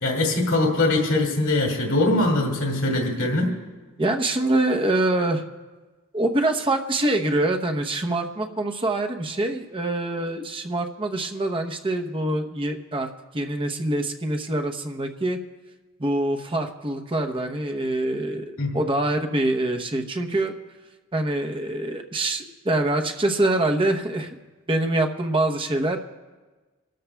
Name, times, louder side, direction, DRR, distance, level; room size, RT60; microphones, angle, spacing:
voice 1, 0.0-3.6 18.6-18.7, left 2 dB, 70° left, 1 dB, 2.3 m, -22 dB
voice 2, 4.0-5.4 6.1-13.1 13.3-15.4 16.0-20.5 21.1-24.3 24.7-26.0, right 2 dB, 25° right, 4 dB, 0.8 m, -25 dB
27.5 x 13.0 x 2.3 m, 1.3 s
head